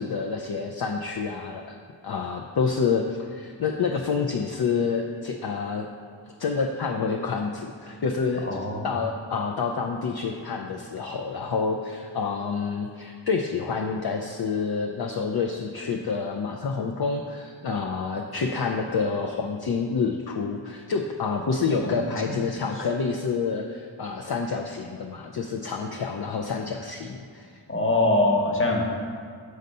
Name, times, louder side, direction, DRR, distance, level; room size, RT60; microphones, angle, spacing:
voice 1, 0.0-1.6 2.0-5.9 6.4-8.5 8.8-27.6, left 5 dB, 55° left, 2 dB, 0.5 m, -28 dB
voice 2, 8.5-8.9 21.8-22.0 22.3-22.4 27.7-28.8, left 2 dB, 25° left, 0 dB, 1.1 m, -23 dB
6.5 x 4.0 x 5.3 m, 2.2 s
wide cardioid pair, 40°, 47 cm